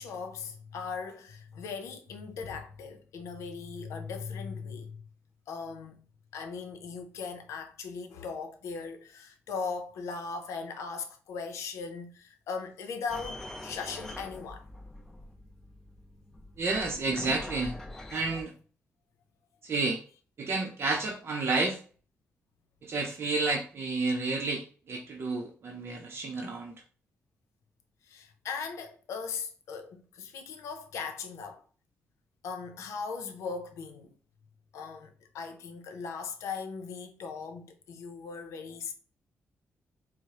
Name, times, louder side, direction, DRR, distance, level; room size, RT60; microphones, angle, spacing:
voice 1, 0.0-5.0 5.5-6.1 6.3-14.7 28.0-31.6 32.4-34.1 34.7-38.9, left 5 dB, 90° left, 0.6 m, -39 dB
sound 1, 13.1-18.4, left 1 dB, 10° left, 0.7 m, -44 dB
voice 2, 16.6-17.7 18.1-18.5 19.6-20.0 20.4-21.8 22.8-26.7, right 3 dB, 55° right, 0.6 m, -30 dB
4.6 x 2.0 x 2.9 m
cardioid pair, 80°, 5 cm